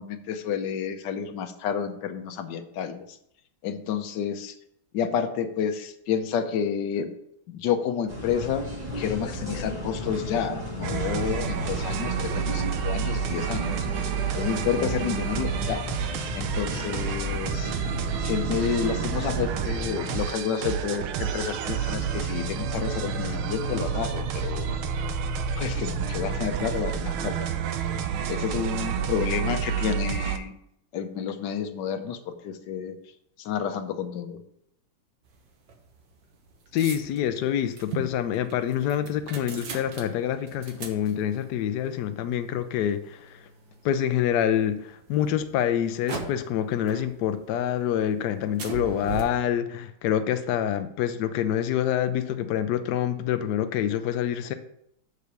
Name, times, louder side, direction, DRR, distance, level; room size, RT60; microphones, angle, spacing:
voice 1, 0.0-3.1 3.6-4.5 4.9-7.1 7.5-8.7 8.9-13.9 14.3-15.9 16.3-17.7 18.2-24.7 25.6-27.5 28.3-30.5 30.9-32.9 33.4-34.4, left 7 dB, 65° left, 8 dB, 1.2 m, -30 dB
sound 1, 8.1-20.3, left 2 dB, 20° right, 1.9 m, -35 dB
sound 2, 10.8-30.4, right 7 dB, 80° right, 1.5 m, -29 dB
sound 3, 35.2-44.4 45.0-46.6 46.9-47.7 48.0-49.2, right 5 dB, 65° right, 1.8 m, -40 dB
voice 2, 36.7-43.4 43.8-54.5, left 10 dB, 85° left, 9 dB, 0.9 m, -26 dB
6.8 x 5.0 x 6.7 m, 0.75 s
omnidirectional pair, 2.3 m